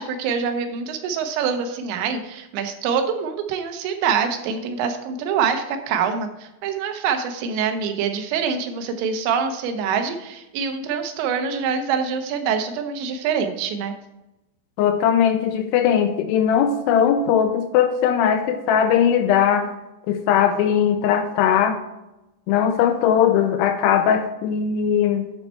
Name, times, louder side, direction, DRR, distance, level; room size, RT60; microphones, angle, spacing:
voice 1, 0.0-13.9, right 6 dB, 85° right, 6 dB, 3.1 m, -25 dB
voice 2, 14.8-19.7 20.1-21.8 22.5-25.3, left 8 dB, 85° left, 7 dB, 2.5 m, -19 dB
11.5 x 4.4 x 4.3 m, 0.95 s
omnidirectional pair, 5.1 m